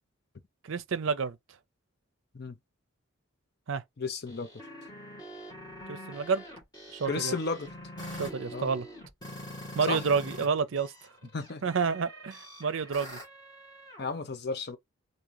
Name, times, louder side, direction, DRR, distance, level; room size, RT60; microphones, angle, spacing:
voice 1, 0.6-1.4 3.7-3.8 5.9-6.4 6.9-7.3 8.2-8.9 9.7-10.9 11.6-13.2, right 5 dB, 70° right, 0.5 m, -29 dB
voice 2, 4.0-4.5 7.1-7.7 8.5-8.7 9.9-10.0 11.3-11.6 14.0-14.8, left 4 dB, 50° left, 0.6 m, -33 dB
sound 1, 4.3-10.5 10.8-14.0, equal, 20° left, 1.9 m, -44 dB
3.7 x 2.7 x 2.9 m
head